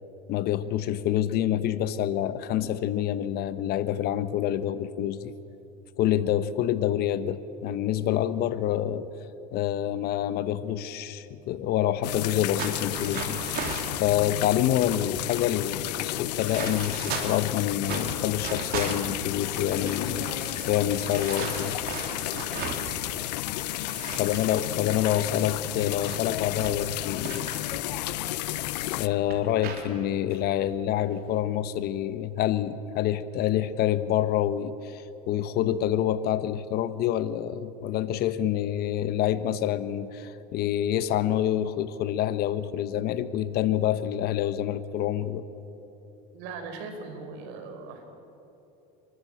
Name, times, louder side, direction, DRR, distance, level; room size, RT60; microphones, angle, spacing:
voice 1, 0.3-5.3 6.0-9.1 9.5-13.6 14.0-21.8 24.2-27.5 29.0-45.4, left 11 dB, 50° left, 13 dB, 1.0 m, -27 dB
sound 1, 12.0-29.1, left 17 dB, 85° left, 0.6 m, -32 dB
sound 2, 12.6-14.0 14.7-14.8 15.0-17.5 17.8-23.3 23.6-28.6 29.0-29.9 30.3-30.5 31.0-31.3, right 5 dB, 50° right, 3.4 m, -37 dB
voice 2, 46.3-48.1, right 4 dB, 65° right, 6 dB, 4.5 m, -40 dB
28.5 x 13.0 x 8.8 m, 3.0 s
supercardioid pair, 120°, 21 cm